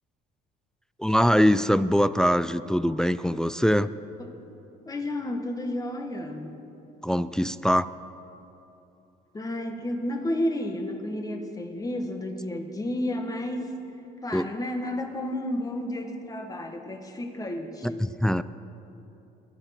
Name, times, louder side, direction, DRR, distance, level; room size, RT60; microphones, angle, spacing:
voice 1, 1.0-3.9 7.0-7.9 14.3-14.5 17.8-18.4, equal, 5° left, 14 dB, 0.3 m, -23 dB
voice 2, 4.9-6.6 9.3-13.7 14.2-18.1, left 1 dB, 20° left, 5 dB, 1.7 m, -31 dB
23.5 x 9.0 x 6.0 m, 3.0 s
cardioid pair, 110°, 17 cm